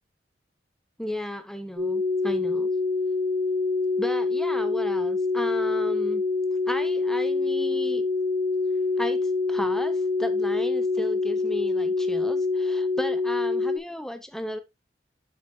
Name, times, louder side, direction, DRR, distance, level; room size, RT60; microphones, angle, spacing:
voice 1, 1.0-2.7 4.0-6.2 6.7-8.0 9.0-14.6, equal, 5° left, 0.7 m, -34 dB
sound 1, 1.8-13.8, left 3 dB, 35° right, 1.5 m, -25 dB
8.1 x 7.3 x 2.6 m
head